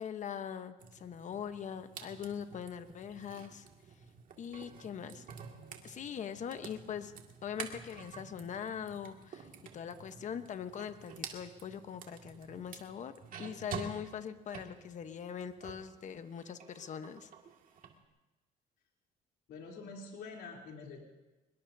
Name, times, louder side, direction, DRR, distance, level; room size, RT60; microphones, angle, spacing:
voice 1, 0.0-3.6 4.4-5.2 5.8-7.1 7.4-9.5 9.7-13.1 13.4-17.3, left 8 dB, 45° left, 10 dB, 1.0 m, -42 dB
sound 1, 0.8-15.9 16.3-17.9, right 6 dB, 55° right, 2.1 m, -49 dB
voice 2, 19.5-21.1, left 4 dB, 75° left, -1 dB, 3.3 m, -46 dB
24.5 x 21.0 x 2.7 m, 1.1 s
cardioid pair, 110°, 17 cm